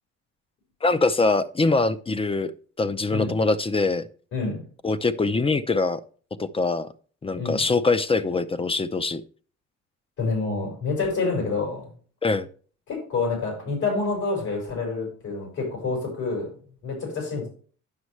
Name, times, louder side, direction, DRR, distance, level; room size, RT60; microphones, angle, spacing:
voice 1, 0.8-4.1 4.8-6.0 6.4-6.9 7.2-9.2 12.2-12.5, left 3 dB, 20° left, 15 dB, 0.5 m, -23 dB
voice 2, 4.3-4.6 7.4-7.6 10.2-11.9 12.9-16.5 16.8-17.5, left 3 dB, 70° left, 0 dB, 4.6 m, -27 dB
9.6 x 6.2 x 3.1 m, 0.43 s
cardioid pair, 90°, 30 cm